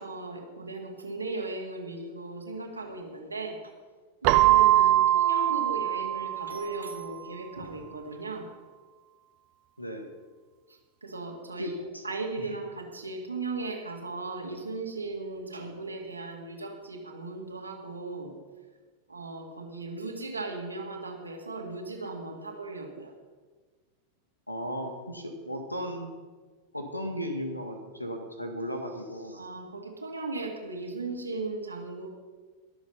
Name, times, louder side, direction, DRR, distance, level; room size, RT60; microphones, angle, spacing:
voice 1, 0.0-3.6 4.2-8.5 10.7-18.3 19.1-23.1 29.3-32.1, right 3 dB, 80° right, 0 dB, 2.2 m, -37 dB
Keyboard (musical), 4.2-7.0, right 14 dB, 45° right, 0.5 m, -22 dB
voice 2, 9.8-10.1 11.6-12.0 12.4-12.6 24.5-26.1 26.7-29.5, equal, 90° left, 6 dB, 1.8 m, -36 dB
21.5 x 7.2 x 5.6 m, 1.4 s
figure-of-eight pair, 90°, 0 cm